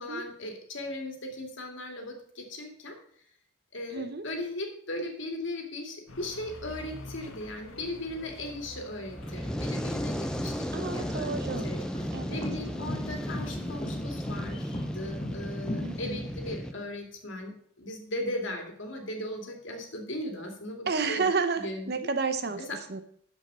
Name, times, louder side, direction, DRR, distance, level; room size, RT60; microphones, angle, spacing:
voice 1, 0.0-3.0 3.7-21.3 21.6-22.1 22.7-22.8, left 1 dB, 65° left, 3 dB, 2.4 m, -38 dB
voice 2, 3.9-4.2 10.7-11.7 12.1-12.4 15.8-16.2 20.9-22.6 22.9-23.0, right 4 dB, 50° right, 9 dB, 0.7 m, -31 dB
sound 1, 6.1-16.0, left 2 dB, 80° left, 1.5 m, -47 dB
Fire, 9.1-16.7, equal, 5° left, 0.6 m, -34 dB
sound 2, 10.3-16.8, left 1 dB, 25° left, 1.0 m, -39 dB
12.0 x 5.3 x 5.5 m, 0.63 s
head